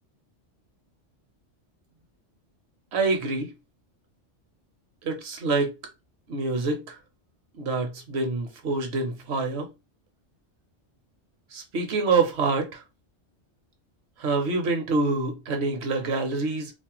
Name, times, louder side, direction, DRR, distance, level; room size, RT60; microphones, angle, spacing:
voice 1, 2.9-3.5 5.0-5.7 6.3-7.0 7.6-9.7 11.5-12.8 14.2-16.7, right 3 dB, 65° right, 0.9 m, -26 dB
2.5 x 2.1 x 2.8 m
omnidirectional pair, 1.2 m